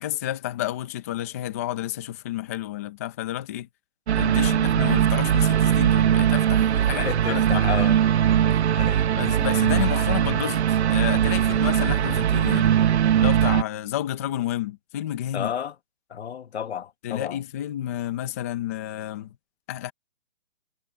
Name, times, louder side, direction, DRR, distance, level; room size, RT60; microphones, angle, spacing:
voice 1, 0.0-3.7 4.2-7.7 9.2-12.7 13.2-15.5 17.0-19.3 19.7-19.9, left 13 dB, 15° left, 0.5 m, -31 dB
sound 1, 4.1-13.6, right 10 dB, 75° right, 0.8 m, -20 dB
voice 2, 6.9-8.0 8.7-9.0 15.3-15.7 16.1-17.4, left 8 dB, 70° left, 1.4 m, -32 dB
hypercardioid pair, 165°, 33 cm